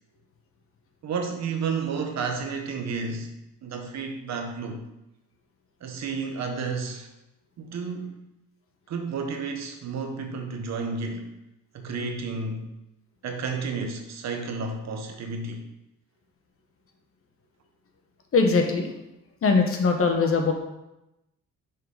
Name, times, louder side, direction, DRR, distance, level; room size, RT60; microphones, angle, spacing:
voice 1, 1.0-4.8 5.8-7.1 7.6-8.3 8.9-11.3 11.7-12.7 13.2-15.6, right 4 dB, 60° right, 4 dB, 1.1 m, -31 dB
voice 2, 18.3-18.9 19.4-20.5, left 4 dB, 50° left, 4 dB, 1.1 m, -21 dB
5.6 x 4.0 x 5.0 m, 0.91 s
cardioid pair, 90°, 30 cm